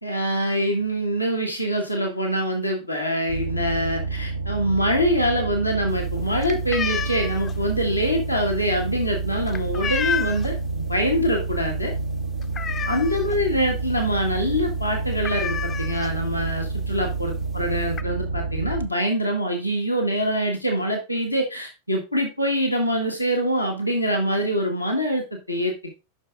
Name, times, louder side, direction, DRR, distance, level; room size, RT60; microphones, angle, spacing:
voice 1, 0.0-11.9 12.9-25.9, equal, 85° left, 2 dB, 1.7 m, -24 dB
sound 1, 3.3-18.9, right 4 dB, 70° right, 0.6 m, -29 dB
sound 2, 5.9-10.7 11.0-11.3 11.6-11.7 12.1-13.4 13.8-13.9 14.2-14.4 14.7-14.8 15.2-16.4 17.2-17.3 17.6-18.0, left 7 dB, 25° left, 0.6 m, -30 dB
7.2 x 6.0 x 3.7 m, 0.27 s
figure-of-eight pair, 90°, 0 cm